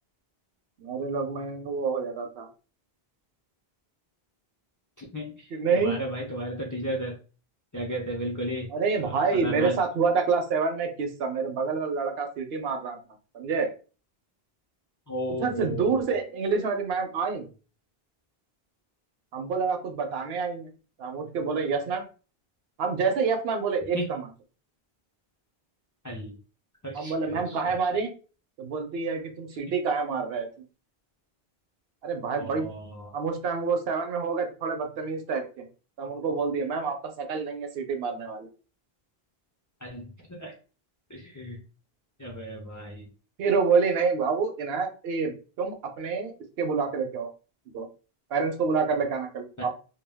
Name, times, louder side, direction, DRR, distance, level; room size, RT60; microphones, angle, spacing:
voice 1, 0.8-2.5 5.5-6.0 8.7-13.0 13.3-13.7 15.4-17.5 19.3-20.7 21.0-22.0 22.8-24.3 26.9-28.1 28.6-30.6 32.0-32.7 33.1-35.7 36.0-38.5 43.4-46.3 46.6-47.3 47.7-47.9 48.3-49.7, right 5 dB, 75° right, 5 dB, 0.8 m, -27 dB
voice 2, 5.0-7.2 7.7-8.7 9.0-9.8 15.1-16.0 23.9-24.1 26.0-26.4 26.8-27.7 32.4-33.1 39.8-40.5 41.1-41.6 42.2-43.1 49.6-49.7, equal, 30° left, -1 dB, 0.4 m, -34 dB
2.2 x 2.1 x 3.4 m, 0.36 s
omnidirectional pair, 1.0 m